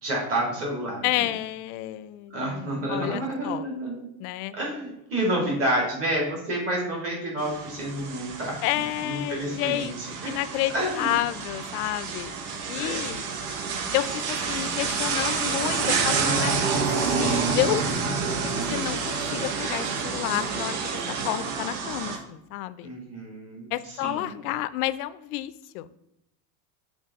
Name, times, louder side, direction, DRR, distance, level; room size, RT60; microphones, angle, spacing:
voice 1, 0.0-1.3 2.3-4.1 4.5-8.6 9.0-10.3 10.7-11.2 12.7-13.1 22.8-23.7 24.0-24.3, right 1 dB, 30° right, -2 dB, 2.2 m, -29 dB
voice 2, 1.0-3.7 4.2-4.5 8.6-9.9 10.2-12.3 12.7-13.2 13.9-16.8 17.2-17.8 18.4-22.9 23.7-25.9, left 15 dB, 85° left, 16 dB, 0.5 m, -30 dB
sound 1, 7.4-22.2, right 5 dB, 85° right, 1.1 m, -28 dB
7.4 x 3.9 x 3.5 m, 0.85 s
cardioid pair, 170°, 43 cm